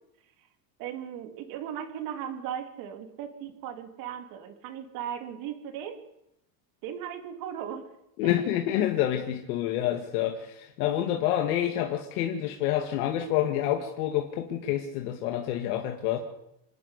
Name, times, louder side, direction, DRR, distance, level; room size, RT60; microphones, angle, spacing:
voice 1, 0.8-6.0 6.8-7.9 8.2-8.3, right 9 dB, 50° right, 6 dB, 3.4 m, -37 dB
voice 2, 8.2-16.2, left 11 dB, 85° left, 3 dB, 2.4 m, -28 dB
27.0 x 11.0 x 10.0 m, 0.83 s
cardioid pair, 175°, 43 cm